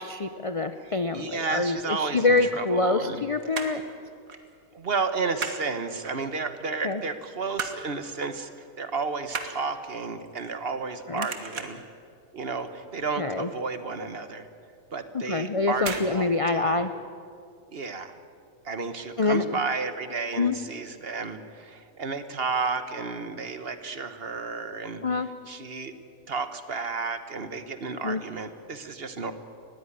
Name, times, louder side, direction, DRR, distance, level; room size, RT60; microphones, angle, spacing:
voice 1, 0.0-3.8 6.8-7.0 11.1-11.3 13.2-13.5 15.3-16.9 19.2-19.6 20.4-20.6 25.0-25.3 28.0-28.2, left 3 dB, 40° left, 10 dB, 0.4 m, -25 dB
voice 2, 0.8-3.2 4.7-8.5 8.8-11.8 12.3-14.5 14.9-16.8 17.7-18.1 18.6-25.0 25.5-25.9 26.3-29.3, right 4 dB, 45° right, 10 dB, 1.3 m, -32 dB
sound 1, 2.4-3.1 3.4-3.9 4.3-4.5 4.8-5.6 6.0-6.6 7.0-7.9 8.2-8.4 8.7-10.9 11.2-11.9 12.3-12.7 12.9-13.0 13.4-13.5 13.9-14.0 14.9-15.2 15.8-16.1 16.4-16.5, right 5 dB, 70° right, 2.0 m, -36 dB
20.0 x 15.5 x 9.9 m, 2.4 s
omnidirectional pair, 1.5 m